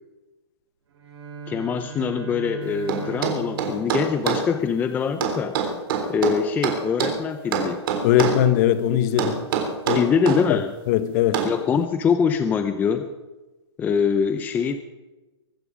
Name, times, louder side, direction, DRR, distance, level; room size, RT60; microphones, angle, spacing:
Bowed string instrument, 0.9-5.0, right 6 dB, 65° right, 6.5 m, -39 dB
voice 1, 1.5-5.6 6.1-7.8 9.9-10.7 11.4-13.1 13.8-14.8, left 6 dB, 10° left, 0.6 m, -23 dB
sound 1, 2.9-4.5 5.2-7.2 7.5-8.4 9.2-10.4 11.3-11.6, right 7 dB, 50° right, 3.5 m, -24 dB
voice 2, 8.0-9.4 9.9-10.0 10.5-10.6 10.9-11.4, left 11 dB, 35° left, 1.2 m, -20 dB
23.0 x 12.0 x 5.1 m
hypercardioid pair, 150°, 15 cm